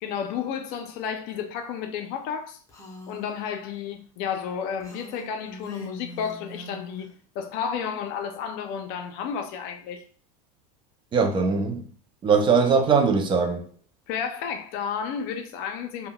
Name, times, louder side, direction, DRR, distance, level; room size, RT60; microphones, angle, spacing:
voice 1, 0.0-2.6 3.1-7.1 7.3-10.0 14.1-16.1, left 7 dB, 55° left, 0.5 m, -32 dB
Female speech woman speaking, 2.7-3.3 4.8-7.1, equal, 15° left, 0.8 m, -43 dB
voice 2, 11.1-11.8 12.2-13.7, right 5 dB, 25° right, 0.4 m, -21 dB
3.6 x 2.2 x 2.2 m
supercardioid pair, 115°, 19 cm